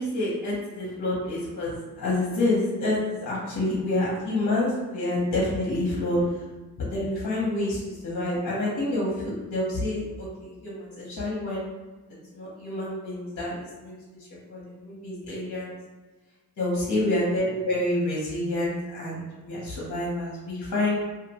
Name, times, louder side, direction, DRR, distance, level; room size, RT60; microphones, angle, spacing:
voice 1, 0.0-6.4 6.8-11.7 12.3-15.7 16.6-20.9, left 1 dB, 50° left, -6 dB, 0.7 m, -28 dB
2.4 x 2.1 x 2.8 m, 1.2 s
wide cardioid pair, 110°, 40 cm